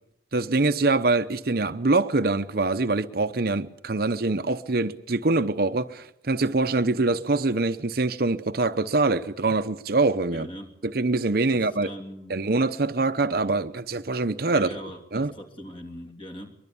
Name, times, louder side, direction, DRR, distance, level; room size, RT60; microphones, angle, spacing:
voice 1, 0.3-10.5 10.8-11.9 12.3-14.8 15.1-15.3, right 3 dB, 55° right, 0.8 m, -24 dB
voice 2, 10.3-10.7 11.5-12.4 14.5-16.6, equal, 30° left, 3.0 m, -41 dB
23.5 x 22.0 x 7.0 m
head